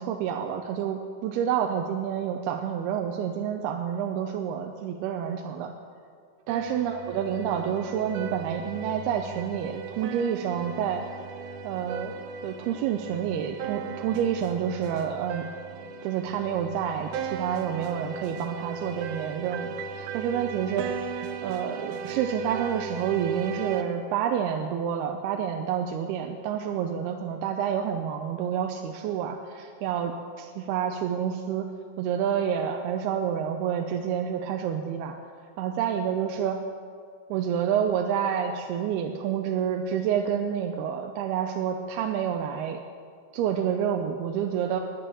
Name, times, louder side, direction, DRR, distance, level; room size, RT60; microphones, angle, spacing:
voice 1, 0.0-5.7 6.5-11.1 11.6-12.1 12.4-15.5 16.0-20.9 21.4-31.7 32.0-35.2 35.6-36.6 37.3-42.8 43.3-44.8, right 8 dB, 85° right, 4 dB, 2.7 m, -28 dB
sound 1, 6.5-23.8, right 6 dB, 70° right, 2.1 m, -37 dB
17.5 x 10.5 x 6.8 m, 2.2 s
omnidirectional pair, 4.5 m